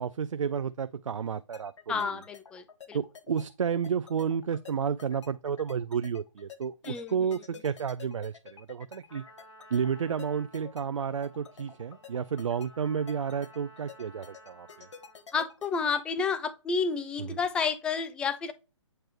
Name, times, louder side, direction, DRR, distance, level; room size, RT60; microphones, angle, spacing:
voice 1, 0.0-2.1 2.9-9.2 9.7-14.9 17.2-17.4, right 7 dB, 90° right, 0.4 m, -31 dB
sound 1, 1.5-16.2, left 7 dB, 70° left, 1.2 m, -49 dB
voice 2, 1.9-3.0 6.8-7.1 15.3-18.5, left 5 dB, 5° left, 0.4 m, -30 dB
Trumpet, 9.1-15.3, equal, 90° left, 4.5 m, -54 dB
7.8 x 4.4 x 3.3 m
hypercardioid pair, 145°, 16 cm